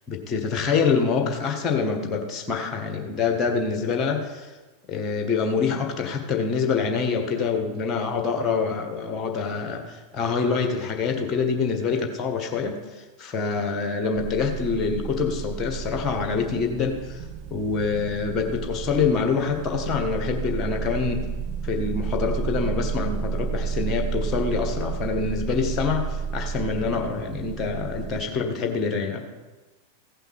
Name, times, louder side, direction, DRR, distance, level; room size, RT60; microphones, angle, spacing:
voice 1, 0.1-4.5 4.9-17.2 17.5-21.2 21.6-29.2, left 5 dB, 25° left, 3 dB, 1.7 m, -26 dB
sound 1, 14.2-28.2, right 6 dB, 40° right, 1.0 m, -31 dB
16.0 x 5.7 x 5.8 m, 1.2 s
figure-of-eight pair, 90°, 0 cm